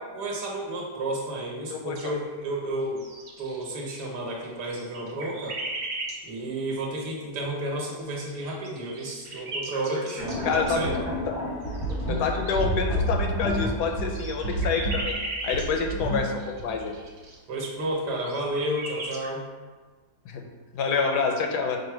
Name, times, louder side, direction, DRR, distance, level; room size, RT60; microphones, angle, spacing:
voice 1, 0.1-3.0 3.4-5.6 6.2-10.9 17.5-19.5, right 1 dB, 90° right, -2 dB, 1.6 m, -31 dB
voice 2, 1.7-2.1 10.4-10.8 12.1-15.1 15.4-17.0 20.3-20.4 20.7-21.8, left 5 dB, 85° left, 3 dB, 1.2 m, -27 dB
sound 1, 1.9-2.6 2.8-4.1 4.4-6.2 7.8-10.9 11.6-12.6 13.3-17.3 17.8-17.9 18.1-19.3, right 2 dB, 55° right, 0.8 m, -37 dB
sound 2, 10.2-17.1, equal, 25° left, 0.5 m, -30 dB
4.9 x 2.2 x 4.5 m, 1.4 s
omnidirectional pair, 1.7 m